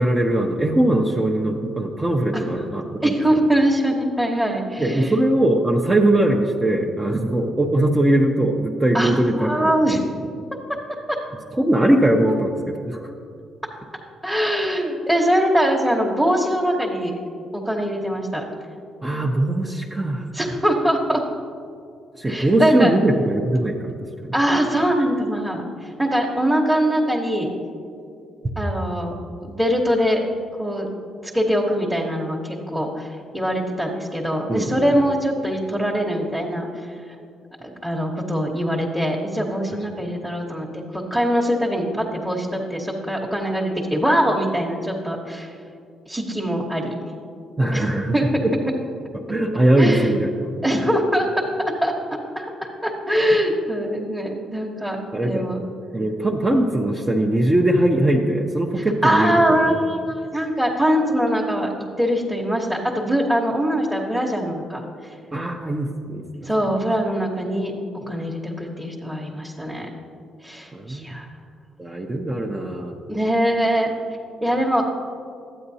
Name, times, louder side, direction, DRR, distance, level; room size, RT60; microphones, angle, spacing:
voice 1, 0.0-3.4 4.8-10.0 11.6-13.1 19.0-20.3 22.2-23.9 24.2-24.3 34.5-34.9 47.6-48.1 48.4-48.5 49.3-50.7 55.1-55.5 55.9-59.3 59.7-59.8 65.3-66.2 70.7-71.3 71.8-72.9, right 1 dB, 20° right, -1 dB, 0.6 m, -21 dB
voice 2, 3.0-5.2 8.9-10.0 11.1-11.2 12.2-12.3 14.2-17.2 17.5-18.4 20.3-21.2 22.3-22.9 24.3-27.5 28.6-29.1 29.4-30.2 30.6-30.9 31.2-37.0 37.8-45.5 46.1-46.9 47.7-48.7 49.8-50.2 50.6-51.9 52.3-55.0 55.2-55.6 58.8-61.7 62.0-64.9 66.4-69.9 70.4-71.3 73.1-73.9 74.4-74.9, equal, 5° right, -2 dB, 1.0 m, -22 dB
12.5 x 8.9 x 2.7 m, 2.4 s
cardioid pair, 90°, 0 cm